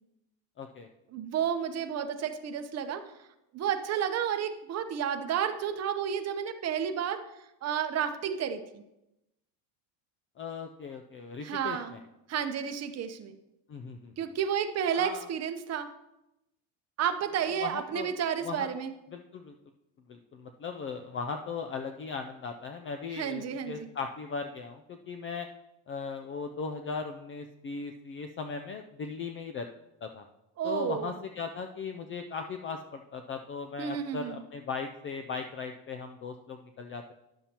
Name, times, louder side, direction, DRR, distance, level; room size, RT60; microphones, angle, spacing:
voice 1, 0.6-0.9 10.4-12.0 13.7-14.1 14.9-15.3 17.6-18.1 18.4-18.7 19.1-19.5 20.1-25.5 25.9-29.7 30.0-30.2 30.6-37.1, left 5 dB, 30° left, 6 dB, 0.4 m, -38 dB
voice 2, 1.1-3.0 3.5-7.2 7.6-8.8 11.4-12.0 12.3-13.4 14.2-15.9 17.0-18.9 23.1-23.9 30.6-31.1 33.8-34.4, right 8 dB, 35° right, 7 dB, 0.8 m, -31 dB
11.0 x 7.0 x 2.9 m, 0.89 s
cardioid pair, 125°, 44 cm